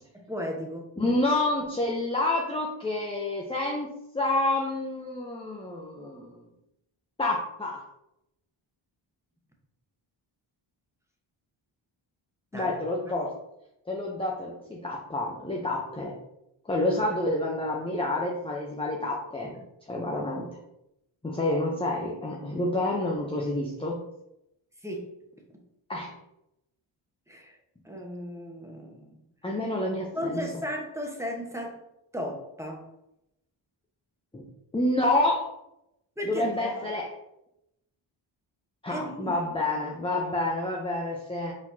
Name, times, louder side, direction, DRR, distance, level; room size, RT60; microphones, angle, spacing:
voice 1, 0.1-0.9 12.5-12.7 13.0-13.1 19.4-19.6 24.8-25.1 25.5-25.6 27.3-27.6 27.8-29.2 30.1-31.8 32.1-32.8 36.2-36.9 38.9-39.4, equal, 5° right, 0 dB, 1.1 m, -35 dB
voice 2, 1.0-3.9 4.1-6.5 7.2-7.8 12.5-13.3 13.9-16.1 16.6-19.5 19.9-20.6 21.2-24.0 25.9-26.1 29.4-30.4 34.3-34.5 34.7-35.5 36.3-37.1 38.8-41.5, left 2 dB, 10° left, -2 dB, 0.7 m, -28 dB
4.5 x 4.2 x 2.8 m, 0.84 s
cardioid pair, 70°, 49 cm